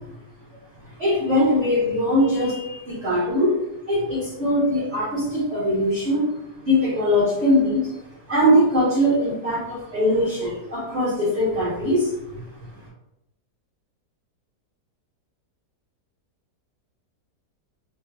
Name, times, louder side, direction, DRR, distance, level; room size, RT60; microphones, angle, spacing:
voice 1, 1.0-3.5 3.9-6.3 6.7-7.8 8.3-12.1, equal, 40° right, -11 dB, 1.8 m, -21 dB
3.4 x 3.0 x 2.2 m, 0.87 s
omnidirectional pair, 1.8 m